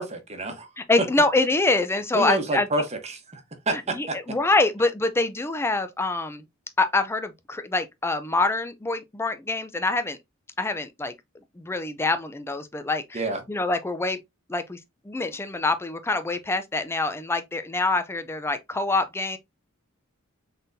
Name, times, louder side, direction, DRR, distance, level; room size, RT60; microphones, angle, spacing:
voice 1, 0.0-0.7 2.1-3.2 3.7-4.1 13.1-13.4, right 2 dB, 30° right, 1.0 m, -28 dB
voice 2, 0.8-2.7 3.7-6.4 6.8-10.2 10.6-11.1 11.6-14.2 14.5-14.8 15.0-19.4, left 2 dB, 10° left, 0.4 m, -25 dB
4.1 x 3.8 x 2.6 m
head